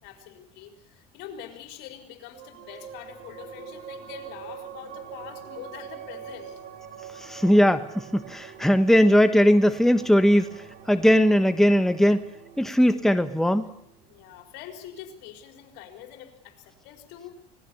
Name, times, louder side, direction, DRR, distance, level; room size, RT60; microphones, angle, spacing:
voice 1, 0.0-6.6 14.1-17.4, left 10 dB, 65° left, 6 dB, 4.5 m, -44 dB
sound 1, 2.3-15.2, right 8 dB, 60° right, 4.4 m, -44 dB
voice 2, 7.2-12.3 12.6-13.7, equal, ahead, 10 dB, 1.2 m, -19 dB
25.0 x 19.5 x 7.1 m, 0.74 s
hypercardioid pair, 85°, 19 cm